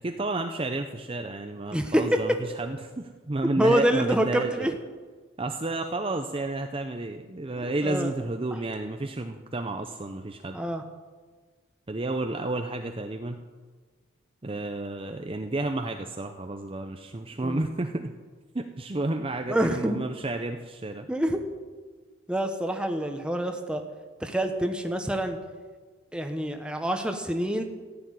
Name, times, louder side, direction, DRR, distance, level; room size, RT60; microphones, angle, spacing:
voice 1, 0.0-4.7 5.4-10.6 11.9-13.4 14.4-18.1 18.5-21.1, right 2 dB, 25° right, 5 dB, 0.6 m, -31 dB
voice 2, 1.7-2.2 3.6-4.7 7.6-8.1 10.5-10.8 17.4-17.6 19.5-20.0 21.1-21.4 22.3-23.9 24.2-25.4 26.1-27.6, right 1 dB, 5° right, 5 dB, 1.1 m, -26 dB
15.0 x 7.0 x 9.5 m, 1.4 s
head